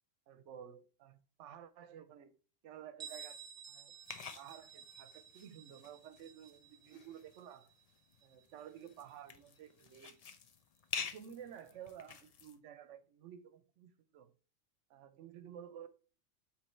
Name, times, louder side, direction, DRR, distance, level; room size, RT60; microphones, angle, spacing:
voice 1, 0.3-2.3 2.6-3.9 4.4-7.7 8.2-10.2 10.9-14.3 14.9-15.9, right 9 dB, 70° right, 0.9 m, -53 dB
Bell, 3.0-8.5, right 8 dB, 35° right, 0.7 m, -54 dB
sound 1, 4.0-12.6, left 6 dB, 55° left, 0.4 m, -48 dB
8.1 x 3.3 x 4.3 m
omnidirectional pair, 1.3 m